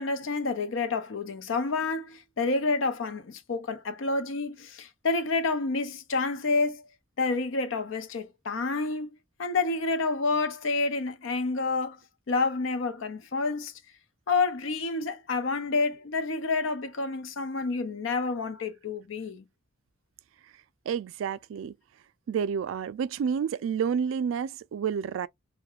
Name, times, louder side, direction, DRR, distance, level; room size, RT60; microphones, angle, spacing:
voice 1, 0.0-6.8 7.2-9.1 9.4-12.0 12.3-13.7 14.3-19.4, left 3 dB, 80° left, 0.6 m, -29 dB
voice 2, 20.9-21.7 22.3-25.3, right 7 dB, 90° right, 0.3 m, -29 dB
2.3 x 2.1 x 2.8 m
head